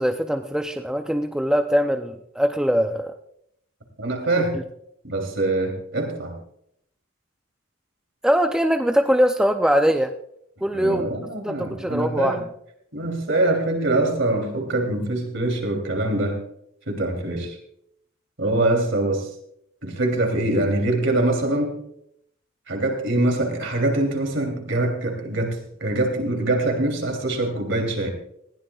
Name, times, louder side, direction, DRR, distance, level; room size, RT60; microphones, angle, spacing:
voice 1, 0.0-3.1 4.5-4.6 8.2-10.1 10.6-11.0 11.3-12.4, equal, 5° right, 5 dB, 0.5 m, -22 dB
voice 2, 4.0-4.6 5.0-6.4 10.7-12.4 12.9-16.4 16.9-17.6 18.4-19.3 19.8-21.8 22.7-28.1, right 2 dB, 60° right, 3 dB, 3.1 m, -24 dB
19.5 x 15.5 x 2.4 m, 0.72 s
head